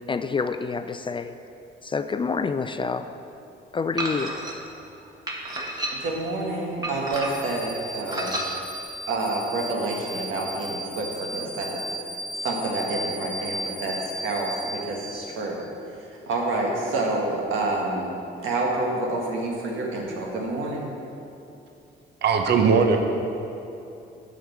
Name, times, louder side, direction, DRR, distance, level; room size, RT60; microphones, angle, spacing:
voice 1, 0.0-1.4 1.8-3.1 3.7-4.4, left 5 dB, 25° left, 10 dB, 0.3 m, -27 dB
sound 1, 4.0-4.5 5.3-6.2 6.8-7.6 8.1-8.5, right 1 dB, 20° right, 1.4 m, -30 dB
voice 2, 6.0-8.3 9.1-11.8 12.4-15.6 15.9-18.1 18.4-20.9, right 2 dB, 85° right, -2 dB, 1.7 m, -28 dB
sound 2, 7.1-15.6, right 1 dB, 10° left, 1.7 m, -36 dB
voice 3, 22.2-23.0, right 5 dB, 60° right, 4 dB, 0.8 m, -19 dB
7.5 x 5.1 x 7.2 m, 2.8 s
cardioid pair, 90°, 20 cm